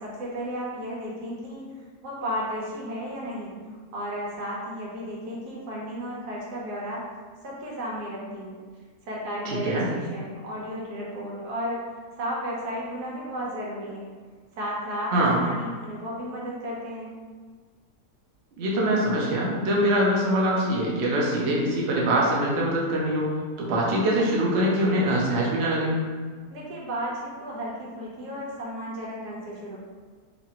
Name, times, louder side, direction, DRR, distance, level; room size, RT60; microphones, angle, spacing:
voice 1, 0.0-1.6 2.0-3.5 3.9-7.0 7.4-8.6 9.0-11.9 12.2-14.0 14.5-15.1 15.4-17.1 26.5-29.8, equal, 90° right, -5 dB, 1.3 m, -33 dB
voice 2, 9.4-9.8 15.1-15.4 18.6-23.3 23.6-25.9, right 1 dB, 55° right, -4 dB, 0.7 m, -23 dB
2.8 x 2.5 x 2.8 m, 1.5 s
omnidirectional pair, 1.7 m